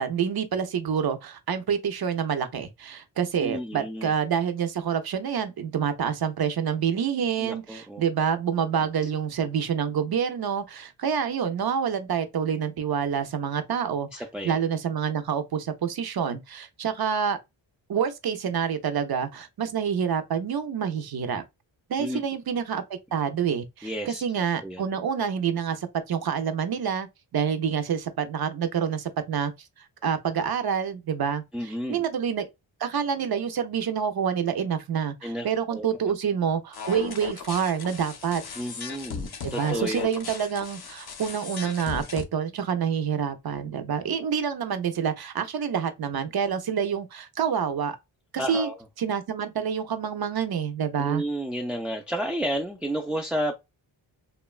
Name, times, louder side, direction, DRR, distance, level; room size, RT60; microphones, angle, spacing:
voice 1, 0.0-17.4 17.9-21.4 21.9-27.1 27.3-29.5 30.0-32.5 32.8-38.4 39.4-48.0 48.3-48.7 49.0-51.2, right 7 dB, 50° right, 0.6 m, -27 dB
voice 2, 3.4-4.1 7.4-8.0 14.1-14.6 22.0-22.2 23.8-24.2 24.6-24.8 31.5-32.0 35.2-35.9 38.6-40.1 48.4-48.7 51.0-53.6, right 1 dB, ahead, 0.3 m, -31 dB
sound 1, 36.7-42.2, left 6 dB, 50° left, 0.6 m, -37 dB
2.9 x 2.2 x 2.3 m
cardioid pair, 85°, 48 cm